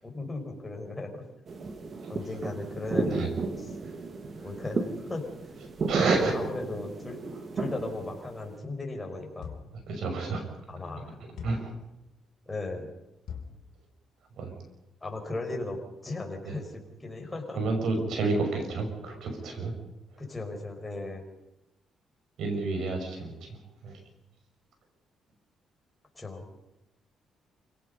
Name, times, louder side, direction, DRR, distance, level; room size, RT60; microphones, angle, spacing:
voice 1, 0.0-1.3 2.1-3.3 3.6-3.7 4.4-5.5 6.1-7.3 7.5-9.5 10.7-11.3 12.5-12.9 15.0-17.6 20.2-21.2 26.1-26.4, left 2 dB, 20° left, 2 dB, 5.7 m, -36 dB
sound 1, 1.5-8.6, right 3 dB, 45° right, 2.2 m, -33 dB
voice 2, 5.9-6.3 9.9-10.4 11.4-11.7 14.3-14.6 16.4-16.5 17.5-19.7 22.4-24.0, right 3 dB, 70° right, 4 dB, 5.9 m, -30 dB
sound 2, 9.4-9.8 11.4-11.8 13.3-13.6, left 7 dB, 70° left, 3.3 m, -41 dB
28.5 x 17.0 x 5.5 m, 0.90 s
cardioid pair, 90°, 0 cm